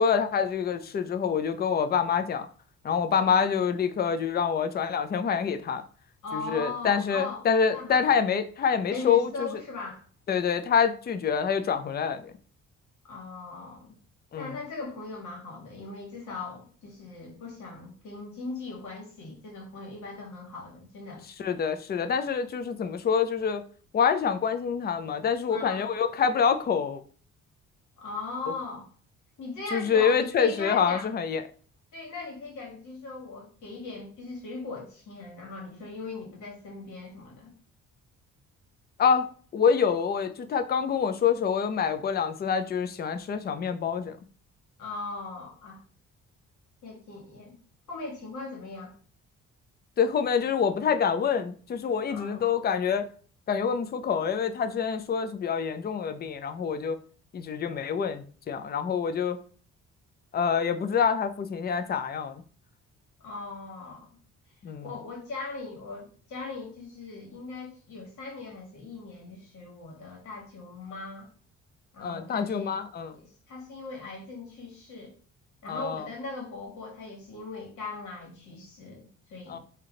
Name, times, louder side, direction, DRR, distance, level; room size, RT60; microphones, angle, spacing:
voice 1, 0.0-2.5 2.8-5.8 6.3-9.5 10.3-12.3 14.3-14.5 21.4-23.6 23.9-27.0 29.7-31.4 39.0-39.3 39.5-44.2 50.0-53.1 53.5-57.0 57.3-59.4 60.3-62.4 64.6-64.9 72.0-73.1 75.7-76.1 79.5-79.6, left 6 dB, 35° left, 0.5 m, -26 dB
voice 2, 6.2-7.4 7.7-8.1 8.9-10.0 13.1-14.0 14.3-21.2 25.5-25.8 28.0-28.9 29.4-31.1 31.9-37.5 44.8-45.8 46.8-47.6 47.9-48.9 52.1-52.4 63.2-64.1 64.8-71.3 71.9-72.7 73.1-75.1 75.6-79.6, left 3 dB, 75° left, 1.9 m, -39 dB
3.4 x 2.8 x 3.7 m
cardioid pair, 90°, 30 cm